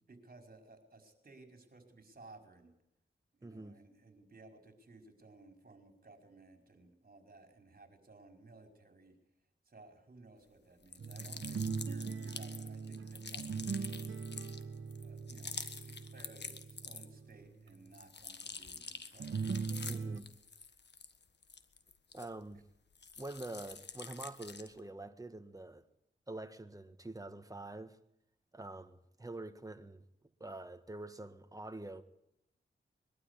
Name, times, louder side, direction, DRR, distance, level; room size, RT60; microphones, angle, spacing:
voice 1, 0.1-2.7 3.3-9.1 9.6-13.8 15.0-19.6, right 3 dB, 45° right, 5.3 m, -58 dB
voice 2, 3.4-3.8 19.8-20.3 22.1-22.6 23.2-25.8 26.3-28.0 28.5-30.0 30.4-32.0, right 2 dB, 15° right, 1.6 m, -46 dB
sound 1, 10.8-17.3 17.7-22.6 22.9-24.8, left 5 dB, 55° left, 1.5 m, -48 dB
sound 2, 11.0-17.7 19.2-20.2, right 5 dB, 70° right, 1.4 m, -40 dB
22.0 x 12.5 x 10.0 m
cardioid pair, 65°, 20 cm